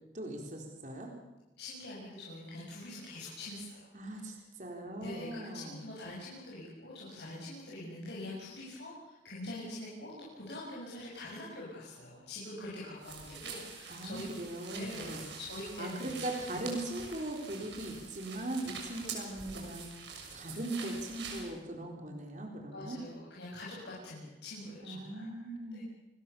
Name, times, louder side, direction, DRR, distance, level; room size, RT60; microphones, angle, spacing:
voice 1, 0.1-1.1 3.9-5.9 13.9-15.2 15.8-19.9 20.3-23.0 24.8-25.8, right 1 dB, 45° right, 1 dB, 4.1 m, -40 dB
voice 2, 1.6-3.9 4.8-14.2 14.7-16.1 22.7-25.2 25.7-25.8, left 1 dB, 70° left, -6 dB, 7.2 m, -44 dB
sound 1, 13.0-21.5, right 5 dB, 75° right, 6.6 m, -45 dB
28.5 x 21.5 x 7.0 m, 0.98 s
head